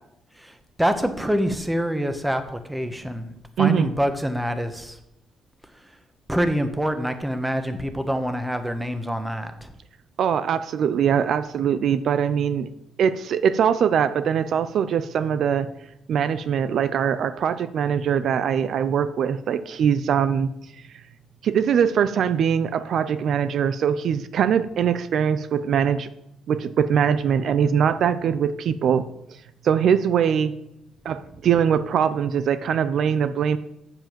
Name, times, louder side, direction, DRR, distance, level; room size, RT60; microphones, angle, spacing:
voice 1, 0.8-3.3 3.6-5.0 6.3-9.7, equal, 5° right, 8 dB, 1.3 m, -25 dB
voice 2, 3.6-3.9 10.2-12.7 13.0-15.7 16.1-20.5 21.4-26.1 26.5-29.1 29.6-30.5 31.0-33.6, right 8 dB, 65° right, 12 dB, 0.5 m, -22 dB
7.8 x 7.6 x 7.4 m, 0.82 s
cardioid pair, 90°, 0 cm